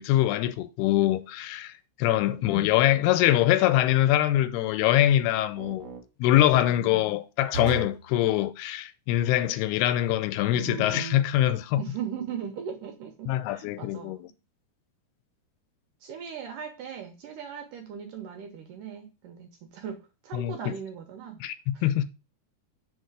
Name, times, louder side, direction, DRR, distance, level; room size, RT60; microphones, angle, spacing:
voice 1, 0.0-1.7 2.0-5.9 6.2-11.8 13.3-14.3 20.3-20.7 21.4-21.5 21.8-22.0, left 13 dB, 85° left, 2.5 m, -23 dB
voice 2, 2.1-2.4 6.5-6.8 11.8-14.3 16.0-20.0 20.2-21.4 21.7-21.8, right 8 dB, 70° right, 2.2 m, -39 dB
sound 1, 2.5-3.0 5.5-6.0 7.5-8.1 10.5-11.3, right 4 dB, 50° right, 2.2 m, -36 dB
6.5 x 4.2 x 4.8 m
omnidirectional pair, 4.6 m